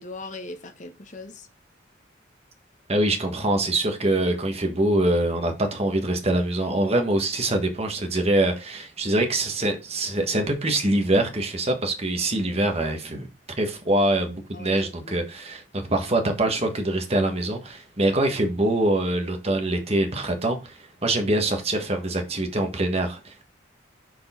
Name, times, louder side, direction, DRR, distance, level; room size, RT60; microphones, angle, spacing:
voice 1, 0.0-1.5 12.3-12.6 14.5-15.2, left 2 dB, 40° left, 0.9 m, -40 dB
voice 2, 2.9-13.3 13.6-23.4, right 1 dB, 35° right, 1.4 m, -24 dB
6.1 x 4.8 x 4.3 m
head